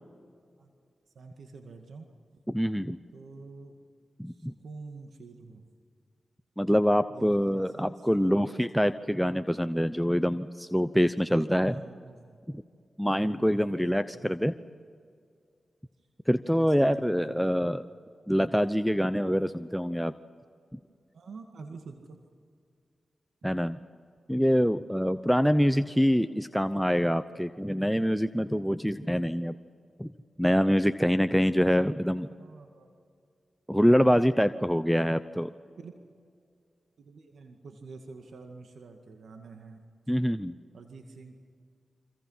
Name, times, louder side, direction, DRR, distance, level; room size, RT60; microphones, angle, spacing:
voice 1, 1.1-2.1 3.1-3.8 4.3-5.6 7.1-8.6 11.6-12.4 13.5-14.3 16.6-17.6 21.1-22.2 32.4-32.9 35.8-35.9 37.0-39.8 40.7-41.3, right 4 dB, 80° right, 4 dB, 2.0 m, -47 dB
voice 2, 2.5-3.0 4.2-4.5 6.6-11.8 12.5-12.6 13.0-14.5 16.3-17.8 18.3-20.1 20.7-20.8 23.4-23.8 24.3-29.5 30.0-30.1 30.4-32.3 33.7-35.5 40.1-40.5, equal, ahead, 10 dB, 0.8 m, -25 dB
28.5 x 25.5 x 5.7 m, 2.2 s
cardioid pair, 50°, 0 cm